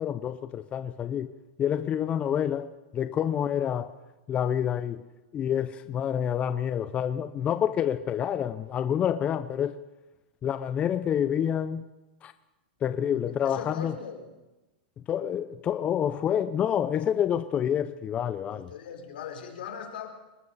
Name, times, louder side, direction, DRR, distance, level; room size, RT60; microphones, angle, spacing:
voice 1, 0.0-1.3 1.6-4.0 4.3-5.0 5.3-9.8 10.4-11.8 12.2-12.3 12.8-13.9 15.1-18.7, left 9 dB, 25° left, 12 dB, 0.6 m, -28 dB
voice 2, 13.4-14.3 18.5-20.1, left 7 dB, 75° left, 4 dB, 3.5 m, -39 dB
25.5 x 12.5 x 4.1 m, 1.1 s
hypercardioid pair, 135°, 5 cm